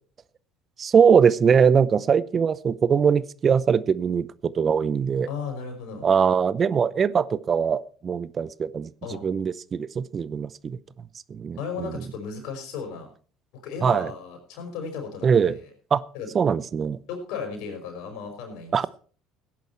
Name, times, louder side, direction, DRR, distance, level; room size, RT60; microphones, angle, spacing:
voice 1, 0.8-5.3 6.0-10.8 11.3-11.9 13.8-14.1 15.2-15.5 15.9-16.0 16.3-17.0 18.7-18.9, right 6 dB, 40° right, 18 dB, 0.7 m, -22 dB
voice 2, 5.3-6.1 9.0-9.2 11.6-13.1 13.5-15.5 16.1-16.3 17.1-18.9, left 5 dB, 70° left, 4 dB, 5.4 m, -35 dB
17.0 x 10.5 x 4.5 m, 0.42 s
hypercardioid pair, 70°, 0 cm